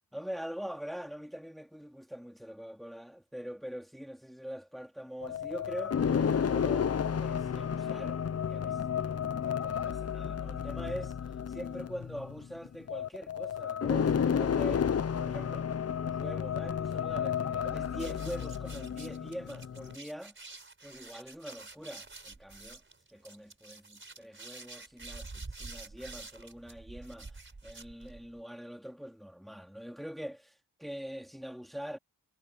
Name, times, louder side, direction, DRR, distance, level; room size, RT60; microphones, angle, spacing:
voice 1, 0.1-8.2 8.5-8.8 9.4-11.2 11.5-14.9 15.2-15.7 16.0-20.4 20.8-22.8 23.1-32.0, equal, ahead, 3.4 m, -43 dB
sound 1, 5.2-19.9, left 7 dB, 40° left, 0.5 m, -32 dB
sound 2, 18.0-28.4, right 3 dB, 30° right, 4.5 m, -48 dB
wide cardioid pair, 160°, 40 cm